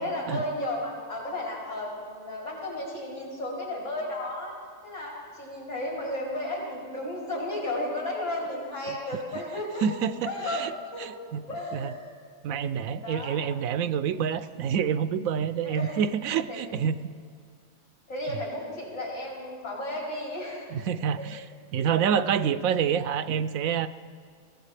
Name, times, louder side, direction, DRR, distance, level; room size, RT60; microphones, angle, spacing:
voice 1, 0.0-4.6 4.8-9.9 10.3-10.6 10.9-11.1 11.5-12.1 12.4-12.5 13.0-13.4 15.6-16.0 16.5-16.6 18.1-20.6 21.2-21.4 22.3-22.4, left 1 dB, 60° left, -4 dB, 5.7 m, -33 dB
voice 2, 9.8-10.7 11.0-11.4 11.7-11.9 12.4-16.9 20.7-21.4 21.7-23.9, right 8 dB, 75° right, 12 dB, 1.0 m, -27 dB
22.5 x 16.5 x 3.3 m, 2.1 s
omnidirectional pair, 1.5 m